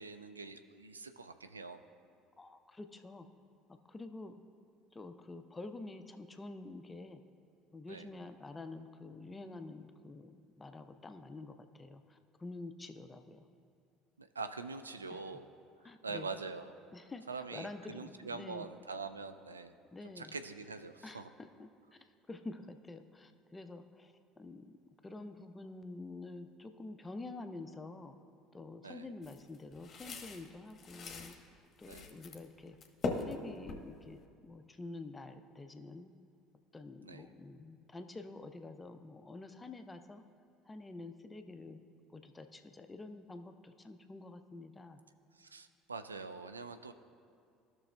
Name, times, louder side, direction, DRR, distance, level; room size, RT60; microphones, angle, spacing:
voice 1, 0.0-1.8 7.9-8.1 14.2-15.4 16.0-16.7 17.3-19.7 20.0-21.3 28.8-29.1 31.9-32.1 37.0-37.2 45.3-46.9, right 4 dB, 85° right, 9 dB, 0.3 m, -44 dB
voice 2, 2.4-3.3 3.9-4.4 4.9-7.2 7.7-13.5 15.1-15.2 15.8-16.4 16.9-17.2 17.5-18.7 19.9-20.3 21.0-24.7 25.0-28.2 28.5-31.4 31.8-32.8 33.2-36.1 36.7-40.2 40.7-41.8 42.1-45.0, left 2 dB, 20° left, 8 dB, 0.6 m, -48 dB
sound 1, 29.2-31.4 31.8-32.4 32.7-34.2, left 3 dB, 35° left, 1.0 m, -41 dB
15.0 x 6.0 x 2.2 m, 2.3 s
figure-of-eight pair, 60°, 0 cm